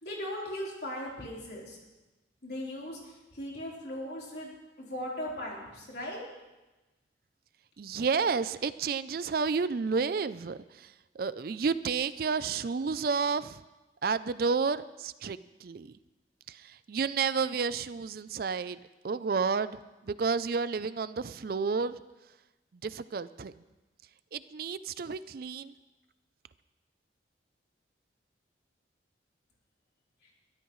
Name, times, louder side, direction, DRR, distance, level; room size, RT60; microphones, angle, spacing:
voice 1, 0.0-1.8 2.4-6.3, left 1 dB, 60° left, -4 dB, 3.9 m, -38 dB
voice 2, 7.8-13.6 14.0-15.9 16.5-18.8 19.0-19.8 20.0-22.0 22.8-23.5 24.3-25.7, right 5 dB, 50° right, 15 dB, 0.4 m, -31 dB
22.5 x 13.0 x 3.2 m, 1.1 s
head